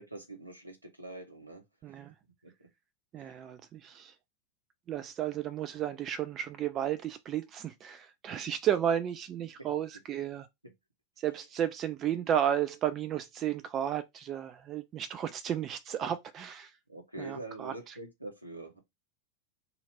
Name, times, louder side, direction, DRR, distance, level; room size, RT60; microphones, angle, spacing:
voice 1, 0.0-2.0 2.4-2.7 16.9-18.8, right 2 dB, 85° right, 0.9 m, -45 dB
voice 2, 1.8-2.1 3.1-4.1 4.9-10.5 11.2-16.7 17.2-17.9, right 10 dB, 30° right, 0.4 m, -33 dB
2.7 x 2.5 x 4.2 m
figure-of-eight pair, 90°, 0 cm